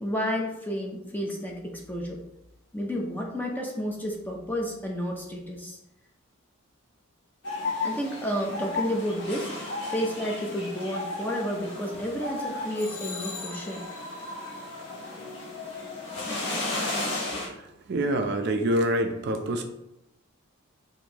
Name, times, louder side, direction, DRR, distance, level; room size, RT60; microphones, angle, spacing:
voice 1, 0.0-2.2 2.7-5.8 7.8-9.5 9.9-13.8, equal, 10° left, 0 dB, 0.5 m, -31 dB
sound 1, 7.4-17.5, left 2 dB, 55° left, 1.0 m, -34 dB
voice 2, 17.9-19.6, right 1 dB, 50° right, 5 dB, 0.4 m, -25 dB
4.4 x 2.6 x 2.8 m, 0.85 s
head